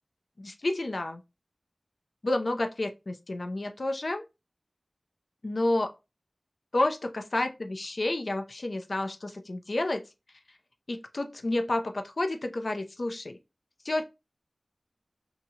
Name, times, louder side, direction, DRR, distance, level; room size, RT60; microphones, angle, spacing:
voice 1, 0.4-1.2 2.2-4.2 5.4-5.9 6.7-10.0 10.9-13.4 13.8-14.0, left 2 dB, 60° left, 0.6 m, -30 dB
2.8 x 2.8 x 3.5 m
wide cardioid pair, 55°, 0 cm